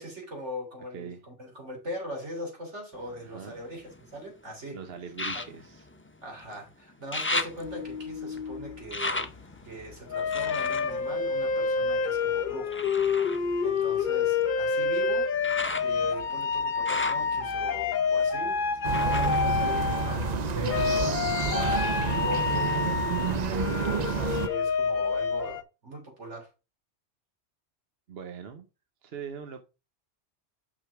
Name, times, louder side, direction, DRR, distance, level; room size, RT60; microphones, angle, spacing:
voice 1, 0.0-4.8 5.3-5.4 6.2-9.3 9.6-12.8 13.6-15.3 15.8-18.6 18.9-22.9 23.4-26.5, equal, 80° right, 3.6 m, -40 dB
sound 1, 2.9-4.3 5.1-6.6 6.9-12.1 12.7-20.5 20.9-21.7 22.2-22.3, left 2 dB, 15° left, 0.5 m, -37 dB
voice 2, 3.2-3.5 4.7-5.9 22.4-23.0 28.1-28.7 29.0-29.6, right 7 dB, 60° right, 1.0 m, -41 dB
sound 2, 7.6-8.9 10.1-20.4 20.7-25.6, left 5 dB, 50° left, 0.8 m, -28 dB
sound 3, 18.8-24.5, right 4 dB, 45° right, 0.6 m, -29 dB
6.2 x 5.9 x 4.7 m
omnidirectional pair, 1.2 m